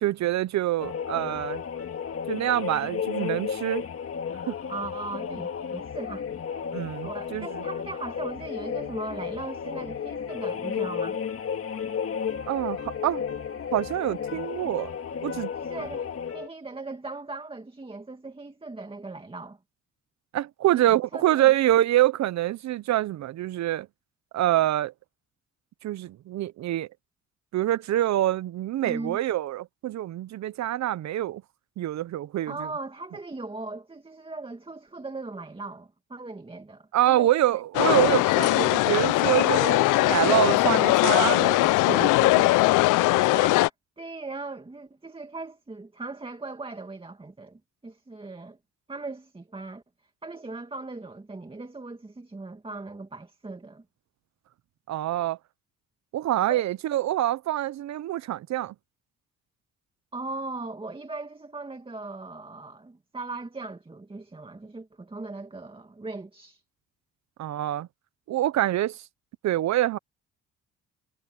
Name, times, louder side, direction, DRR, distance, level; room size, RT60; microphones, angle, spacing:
voice 1, 0.0-1.6 2.3-3.8 4.5-4.6 6.7-7.6 12.5-13.2 13.7-14.9 15.2-15.5 15.8-15.9 20.3-23.9 24.3-24.9 25.8-26.9 27.5-31.4 31.8-32.5 36.9-42.3 54.9-55.4 56.1-58.7 67.4-67.9 68.3-69.0 69.4-70.0, right 14 dB, 65° right, 0.6 m, -26 dB
sound 1, 0.8-16.5, left 7 dB, 50° left, 2.2 m, -33 dB
voice 2, 4.7-6.3 7.0-11.2 15.6-16.1 16.3-19.6 20.7-21.5 28.8-29.2 32.5-37.3 43.1-43.7 44.0-48.6 48.9-49.8 50.2-53.8 56.4-56.6 60.1-66.6, right 3 dB, 20° right, 2.3 m, -38 dB
sound 2, 37.7-43.7, left 20 dB, 90° left, 0.5 m, -20 dB
cardioid pair, 90°, 30 cm